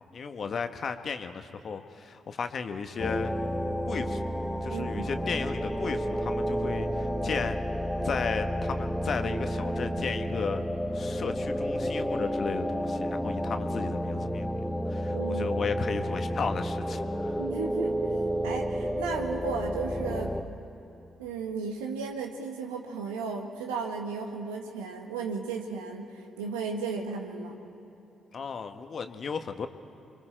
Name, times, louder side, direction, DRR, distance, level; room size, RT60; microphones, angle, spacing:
voice 1, 0.1-3.3 3.9-4.3 4.6-7.6 8.0-10.6 10.9-14.5 14.9-17.4 28.3-29.7, left 5 dB, 55° left, 8 dB, 1.2 m, -34 dB
sound 1, 3.0-20.4, equal, 5° left, 1.5 m, -31 dB
voice 2, 4.7-5.0 15.1-15.5 17.4-18.2 18.4-20.4 21.2-26.1 26.4-27.6, right 5 dB, 85° right, 3 dB, 1.6 m, -34 dB
28.5 x 23.5 x 4.4 m, 2.9 s
hypercardioid pair, 40°, 0 cm